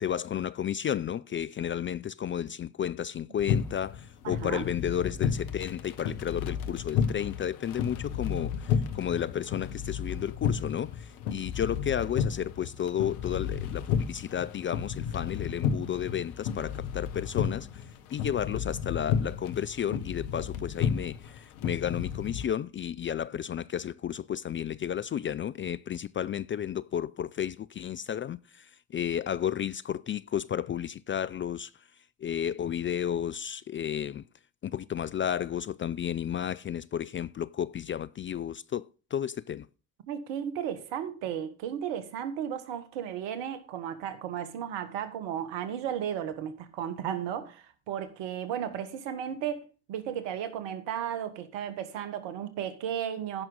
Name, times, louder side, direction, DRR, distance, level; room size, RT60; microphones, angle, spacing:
voice 1, 0.0-34.3 34.6-39.7, left 9 dB, 30° left, 0.4 m, -32 dB
sound 1, 3.4-22.4, left 7 dB, 80° left, 1.1 m, -32 dB
voice 2, 4.2-4.6 40.1-53.4, right 9 dB, 70° right, 1.6 m, -34 dB
15.0 x 6.1 x 3.8 m
hypercardioid pair, 50°, 44 cm